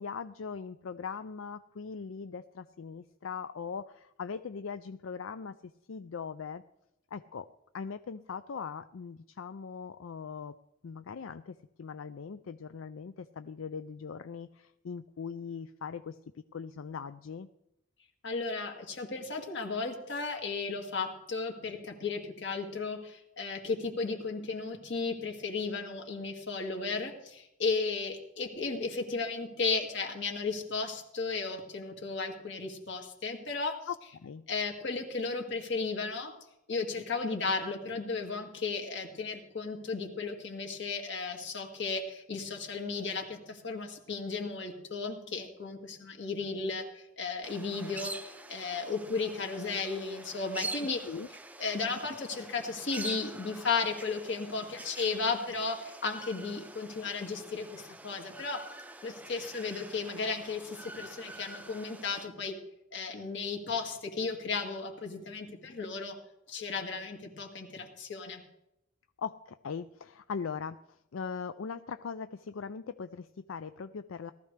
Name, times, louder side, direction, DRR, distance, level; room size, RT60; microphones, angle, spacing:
voice 1, 0.0-6.6 7.1-7.5 7.7-10.5 10.8-16.2 16.5-17.5 33.9-34.4 51.0-51.3 69.2-74.3, left 6 dB, 80° left, 11 dB, 0.5 m, -40 dB
voice 2, 18.2-33.9 34.5-36.4 36.7-51.0 51.6-58.7 59.0-62.5 62.9-66.2 66.5-68.4, left 4 dB, 60° left, 3 dB, 2.2 m, -34 dB
sound 1, 47.4-62.2, right 2 dB, 10° right, 0.5 m, -45 dB
18.0 x 14.0 x 3.3 m, 0.84 s
head